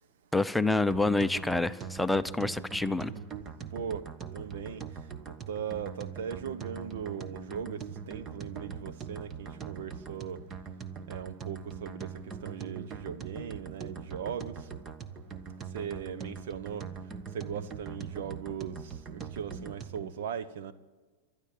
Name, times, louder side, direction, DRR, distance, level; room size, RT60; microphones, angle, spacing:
voice 1, 0.3-3.1, left 2 dB, 5° left, 0.6 m, -27 dB
sound 1, 0.9-20.1, right 6 dB, 30° right, 1.2 m, -42 dB
voice 2, 3.7-10.4 11.1-14.7 15.7-16.9 17.3-20.7, right 7 dB, 70° right, 1.0 m, -39 dB
27.0 x 12.0 x 9.2 m
hypercardioid pair, 105°, 0 cm